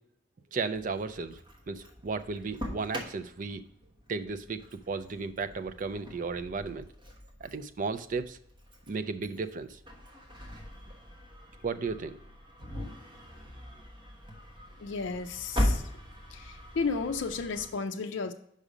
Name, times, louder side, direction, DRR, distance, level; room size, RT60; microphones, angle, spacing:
voice 1, 0.5-1.4 1.7-3.6 4.1-4.6 4.9-6.9 7.4-8.4 8.9-9.8 11.6-12.1, right 4 dB, 40° right, 10 dB, 0.4 m, -34 dB
Engine starting, 0.7-17.7, left 1 dB, 25° right, 1.1 m, -40 dB
voice 2, 14.8-15.9 16.3-18.3, left 4 dB, 65° left, 5 dB, 0.5 m, -33 dB
5.4 x 5.0 x 4.9 m, 0.71 s
head